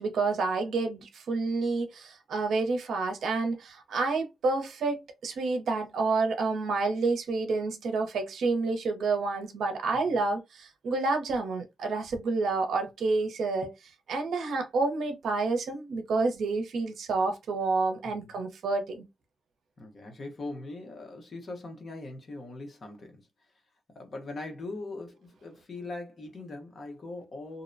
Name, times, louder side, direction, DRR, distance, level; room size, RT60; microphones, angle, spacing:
voice 1, 0.0-13.7 14.1-19.0, right 3 dB, 75° right, 0.6 m, -29 dB
voice 2, 9.9-10.2 18.0-18.4 19.8-23.3 23.9-27.6, left 2 dB, 35° left, 0.8 m, -41 dB
2.6 x 2.1 x 2.5 m
wide cardioid pair, 155°, 0 cm